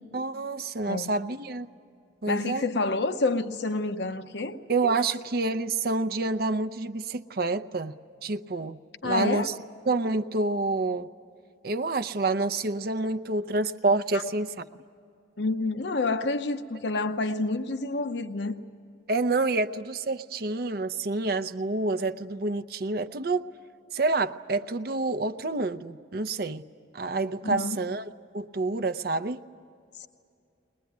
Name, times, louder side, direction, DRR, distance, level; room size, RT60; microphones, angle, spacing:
voice 1, 0.1-1.7 2.2-2.7 4.7-7.9 8.2-9.5 9.9-11.1 11.6-14.7 19.1-23.5 23.9-26.6 26.9-28.1 28.3-29.4, right 3 dB, 55° right, 0.6 m, -28 dB
voice 2, 2.3-4.6 9.0-9.5 14.1-14.2 15.4-18.6 27.4-27.8 30.0-30.1, left 3 dB, 70° left, 0.8 m, -28 dB
21.5 x 21.0 x 9.4 m
head